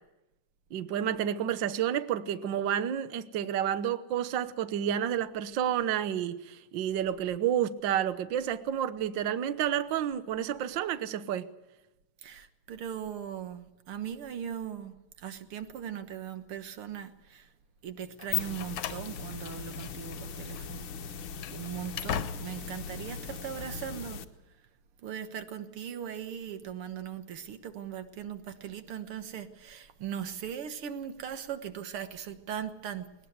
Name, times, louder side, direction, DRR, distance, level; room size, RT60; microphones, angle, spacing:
voice 1, 0.7-11.5, right 10 dB, 90° right, 1.0 m, -30 dB
voice 2, 12.2-17.5 17.8-20.9 21.5-24.2 25.0-33.1, right 9 dB, 55° right, 1.8 m, -39 dB
sound 1, 18.1-24.2, left 7 dB, 60° left, 1.6 m, -39 dB
Slam, 18.2-20.2 20.5-20.7 21.2-22.8, left 9 dB, 90° left, 2.5 m, -39 dB
20.0 x 19.0 x 7.9 m
omnidirectional pair, 3.3 m